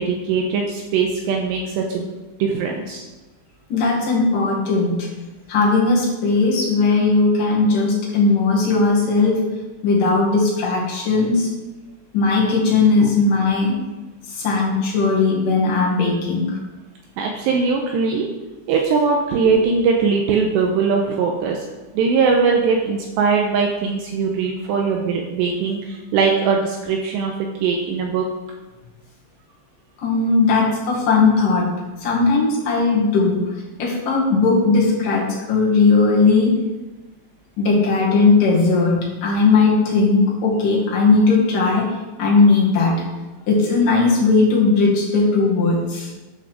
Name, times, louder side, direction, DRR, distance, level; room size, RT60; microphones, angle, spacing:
voice 1, 0.0-2.1 2.4-3.1 13.0-13.1 17.2-18.3 18.7-21.6 21.9-27.3 27.6-28.3, right 5 dB, 80° right, 1 dB, 2.7 m, -20 dB
voice 2, 3.7-5.1 5.5-9.5 9.8-11.5 12.1-13.8 14.3-16.6 30.0-33.5 33.8-36.6 37.6-43.1 43.5-46.1, left 3 dB, 55° left, -3 dB, 3.2 m, -18 dB
10.5 x 5.8 x 6.3 m, 1.1 s
omnidirectional pair, 5.5 m